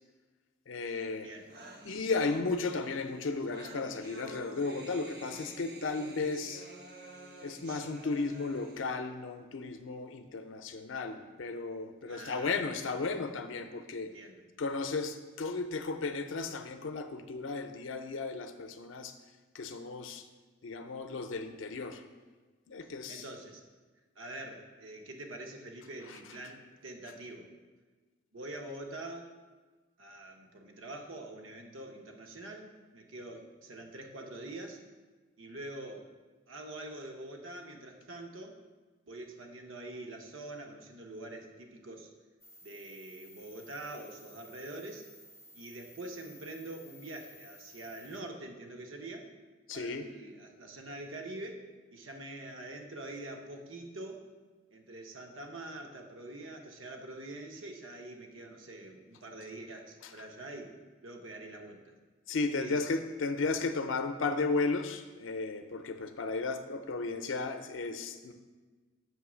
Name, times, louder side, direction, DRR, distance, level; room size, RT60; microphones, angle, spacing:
voice 1, 0.7-1.3 1.8-6.7 7.4-14.1 14.6-19.2 19.5-20.3 20.6-22.0 22.7-23.2 26.1-26.2 49.7-50.1 60.0-60.1 62.3-68.3, left 3 dB, 80° left, 7 dB, 0.5 m, -34 dB
sound 1, 1.0-1.1 1.2-8.8, right 2 dB, 50° right, 0.8 m, -49 dB
voice 2, 12.1-13.0 14.0-14.4 23.1-23.6 24.2-27.5 28.3-29.3 30.0-34.8 35.4-36.1 36.5-38.6 39.1-42.1 42.6-45.1 45.5-49.3 49.7-54.2 54.7-60.8 61.0-61.9 62.6-62.8, right 2 dB, 85° right, 3 dB, 0.9 m, -45 dB
sound 2, 42.4-48.2, equal, 15° left, 0.4 m, -56 dB
7.2 x 3.1 x 6.1 m, 1.3 s
head